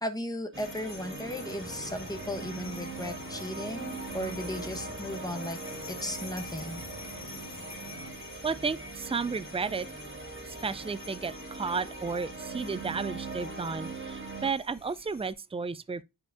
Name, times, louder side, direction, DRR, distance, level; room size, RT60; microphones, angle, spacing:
voice 1, 0.0-5.6 5.9-6.8, left 1 dB, 10° left, 1.1 m, -36 dB
sound 1, 0.5-15.3, left 3 dB, 45° left, 1.7 m, -48 dB
sound 2, 0.5-14.5, right 3 dB, 35° right, 1.5 m, -41 dB
sound 3, 1.2-8.1, left 3 dB, 70° left, 1.7 m, -48 dB
voice 2, 8.4-9.9 10.4-16.0, right 5 dB, 15° right, 0.4 m, -33 dB
10.5 x 4.8 x 2.6 m
wide cardioid pair, 55°, 36 cm